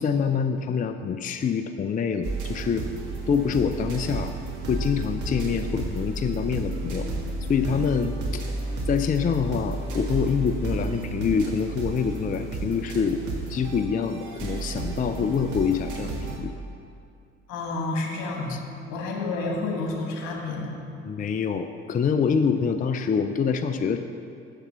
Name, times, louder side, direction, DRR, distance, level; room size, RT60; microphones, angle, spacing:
voice 1, 0.0-2.9 3.3-4.3 4.7-7.1 7.5-8.4 8.9-13.2 13.5-16.5 18.5-18.6 21.0-24.0, left 6 dB, 25° left, 8 dB, 0.5 m, -26 dB
sound 1, 2.2-16.4, right 2 dB, 60° right, 1.7 m, -32 dB
voice 2, 17.5-18.6 18.9-20.8, left 3 dB, 70° left, 0 dB, 1.7 m, -29 dB
7.2 x 6.6 x 7.2 m, 2.4 s
hypercardioid pair, 50°, 35 cm